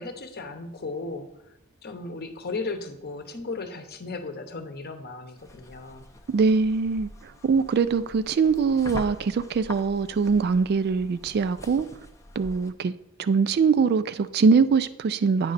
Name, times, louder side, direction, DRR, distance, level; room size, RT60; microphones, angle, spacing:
voice 1, 0.0-1.5 1.8-6.1, left 3 dB, 45° left, 0.8 m, -36 dB
sound 1, 5.4-12.7, left 1 dB, 15° left, 0.5 m, -43 dB
voice 2, 6.3-11.9 12.4-12.9 13.2-15.5, right 5 dB, 50° right, 0.3 m, -22 dB
9.1 x 5.3 x 4.0 m
head